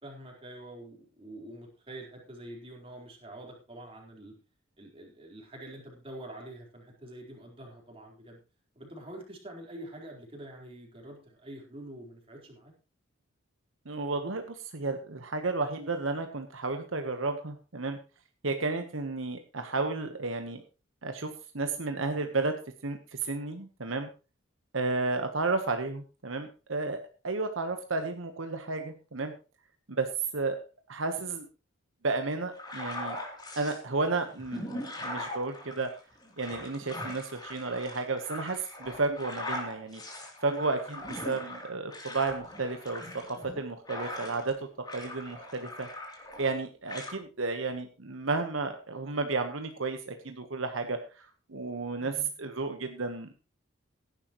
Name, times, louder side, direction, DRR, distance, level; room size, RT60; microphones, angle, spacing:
voice 1, 0.0-4.3 4.8-8.4 8.8-12.7 52.0-52.3, right 1 dB, 25° right, 0 dB, 4.1 m, -46 dB
voice 2, 13.8-18.0 18.4-20.6 21.0-24.1 24.7-29.3 29.9-30.6 30.9-31.5 32.0-33.2 33.5-35.9 36.4-40.0 40.4-44.6 44.9-45.9 46.4-53.3, right 3 dB, 75° right, 6 dB, 1.2 m, -32 dB
sound 1, 32.5-33.8 34.3-44.6 44.8-46.6 46.9-47.1, left 1 dB, 20° left, 3.2 m, -40 dB
16.5 x 11.0 x 3.1 m, 0.32 s
head